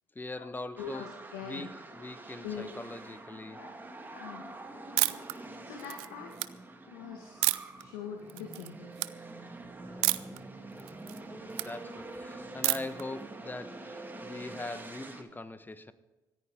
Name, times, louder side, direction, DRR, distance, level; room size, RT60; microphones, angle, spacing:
voice 1, 0.1-3.7 9.8-15.9, left 2 dB, 20° left, 12 dB, 1.3 m, -42 dB
voice 2, 0.8-1.7 2.4-2.6 3.5-3.8 4.1-4.5 5.1-6.3 6.9-7.5 7.8-8.9, left 7 dB, 75° left, 4 dB, 1.6 m, -43 dB
sound 1, 0.8-15.2, right 2 dB, 20° right, 2.2 m, -46 dB
sound 2, 5.0-5.3 5.8-6.5 7.4-7.8 8.3-8.7 8.9-9.1 10.0-10.4 10.8-11.7 12.6-13.0, right 23 dB, 75° right, 0.5 m, -29 dB
25.5 x 10.0 x 3.8 m, 1.2 s
hypercardioid pair, 50°, 10 cm